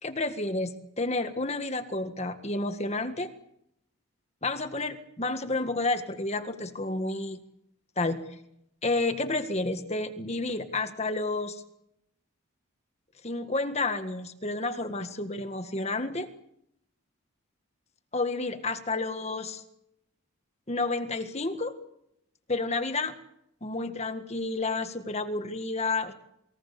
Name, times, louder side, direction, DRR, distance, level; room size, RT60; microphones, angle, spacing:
voice 1, 0.0-3.3 4.4-7.4 8.0-8.2 8.8-11.6 13.2-16.3 18.1-19.6 20.7-21.7 22.5-23.1 23.6-26.1, left 2 dB, 30° left, 8 dB, 1.8 m, -30 dB
28.5 x 21.5 x 6.9 m, 0.77 s
head